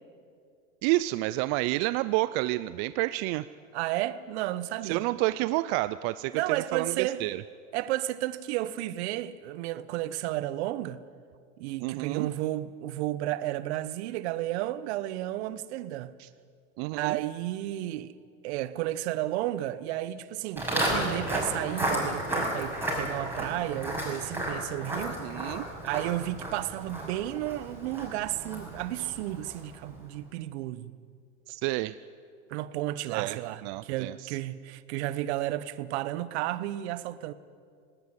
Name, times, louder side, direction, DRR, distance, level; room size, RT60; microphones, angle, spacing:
voice 1, 0.8-3.5 4.8-7.4 11.8-12.3 16.2-16.3 16.8-17.2 25.1-25.7 31.5-32.0 33.1-34.3, right 18 dB, 35° right, 0.4 m, -29 dB
voice 2, 3.7-5.0 6.3-7.2 7.7-11.0 11.6-16.1 16.9-18.1 18.4-25.2 25.8-30.9 32.5-37.3, right 15 dB, 55° right, 1.1 m, -32 dB
Walk footsteps, 20.6-29.8, right 1 dB, 5° right, 6.5 m, -33 dB
18.5 x 18.0 x 9.2 m
hypercardioid pair, 120°, 41 cm